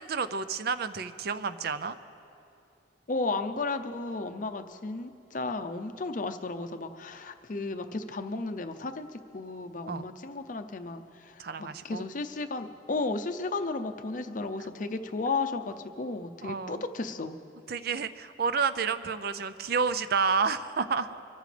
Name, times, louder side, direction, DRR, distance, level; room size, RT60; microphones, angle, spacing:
voice 1, 0.0-2.0 9.9-10.0 11.4-12.1 16.4-16.8 17.7-21.2, right 5 dB, 55° right, 12 dB, 0.5 m, -30 dB
voice 2, 3.1-17.4, left 3 dB, 45° left, 8 dB, 0.6 m, -34 dB
24.0 x 14.5 x 3.3 m, 2.8 s
head